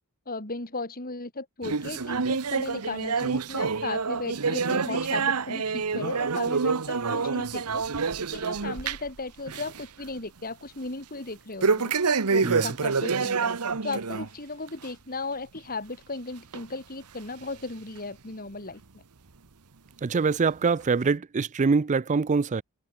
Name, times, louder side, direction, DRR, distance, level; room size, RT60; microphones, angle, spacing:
voice 1, 0.3-7.8 8.3-11.9 12.3-13.5 13.8-19.0, left 3 dB, 40° left, 4.0 m, -36 dB
sound 1, 1.6-9.2 9.5-9.8 10.2-10.3 11.6-14.3 14.7-14.9 15.6-15.7 16.5-16.6 17.4-17.5, right 5 dB, 90° right, 1.1 m, -27 dB
voice 2, 20.0-22.6, right 4 dB, 35° right, 0.4 m, -24 dB
head